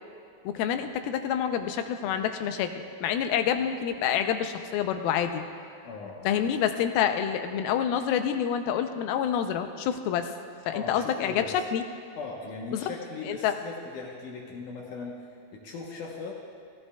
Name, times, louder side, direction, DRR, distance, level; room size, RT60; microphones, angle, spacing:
voice 1, 0.5-5.4 6.2-10.3 10.7-11.4 11.7-11.8 12.7-12.9 13.2-13.5, left 9 dB, 85° left, 7 dB, 2.5 m, -27 dB
voice 2, 5.8-6.4 10.7-11.5 12.2-15.2 15.5-16.3, left 4 dB, 70° left, -2 dB, 2.3 m, -39 dB
16.5 x 16.5 x 2.3 m, 2.5 s
omnidirectional pair, 4.2 m